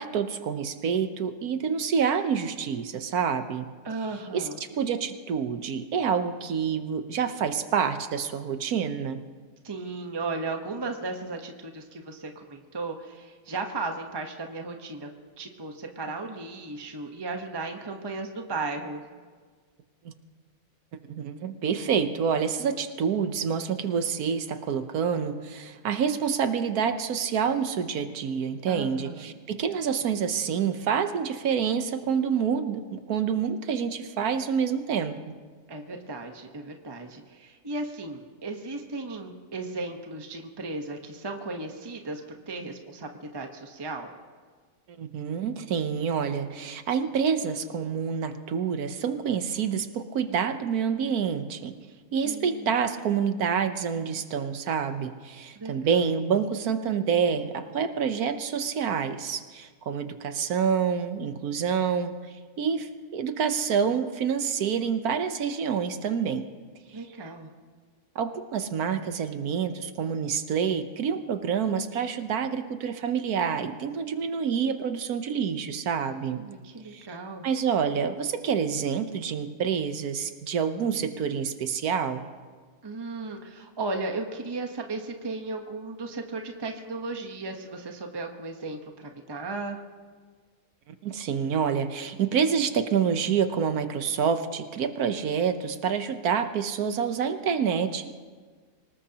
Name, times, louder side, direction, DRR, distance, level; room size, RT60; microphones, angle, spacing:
voice 1, 0.0-3.7 4.3-9.2 20.0-20.1 21.1-35.3 45.0-51.7 52.1-62.1 62.6-66.5 67.2-67.3 68.1-76.4 76.9-77.1 77.4-82.3 91.0-98.2, right 7 dB, 80° right, 8 dB, 1.4 m, -27 dB
voice 2, 3.8-4.6 9.6-15.1 15.4-19.0 28.7-29.4 35.7-42.2 42.5-44.1 52.2-52.8 55.5-56.0 66.9-67.5 76.3-77.5 82.8-89.8, right 3 dB, 20° right, 4 dB, 1.0 m, -35 dB
25.5 x 18.5 x 2.9 m, 1.5 s
omnidirectional pair, 1.6 m